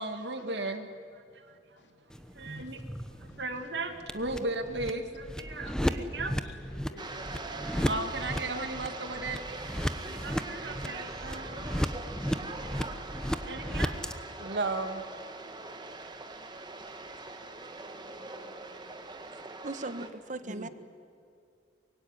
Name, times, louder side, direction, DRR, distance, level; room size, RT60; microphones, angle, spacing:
voice 1, 0.0-1.6 2.3-2.8 3.2-6.4 7.9-9.4 10.0-11.7 13.5-14.0 14.4-15.0 20.4-20.7, right 2 dB, 70° right, 7 dB, 2.3 m, -36 dB
sound 1, 2.1-14.1, equal, 5° left, 1.0 m, -35 dB
voice 2, 2.5-2.8 3.3-3.4 5.7-5.8 6.4-7.9, left 1 dB, 80° left, 3 dB, 3.6 m, -53 dB
sound 2, 7.0-20.1, right 3 dB, 25° right, 1.8 m, -42 dB
voice 3, 19.6-20.7, right 2 dB, 45° right, 11 dB, 1.4 m, -38 dB
24.5 x 23.0 x 9.9 m, 2.5 s
head